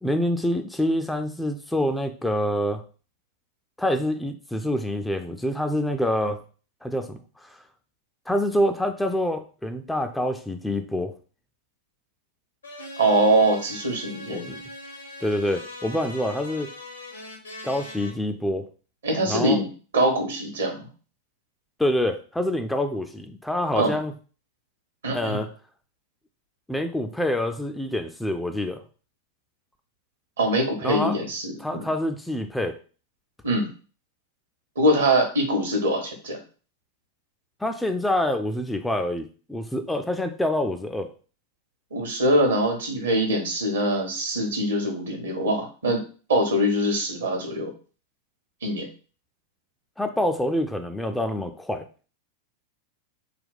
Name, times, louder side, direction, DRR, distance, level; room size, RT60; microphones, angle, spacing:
voice 1, 0.0-2.8 3.8-6.4 6.8-7.6 8.3-11.2 14.3-14.6 15.2-16.7 17.6-18.7 19.3-19.6 21.8-24.1 25.1-25.5 26.7-28.8 30.8-31.2 31.6-32.8 37.6-41.1 50.0-51.9, left 1 dB, 5° left, 7 dB, 0.3 m, -26 dB
sound 1, 12.6-18.1, left 2 dB, 75° left, 0.9 m, -40 dB
voice 2, 13.0-14.4 19.0-19.6 19.9-20.9 23.7-23.9 25.0-25.4 30.4-31.9 33.4-33.7 34.8-36.4 41.9-46.0 46.3-47.7 48.6-48.9, right 1 dB, 70° right, 4 dB, 0.9 m, -23 dB
3.4 x 2.2 x 4.0 m, 0.38 s
figure-of-eight pair, 90°, 0 cm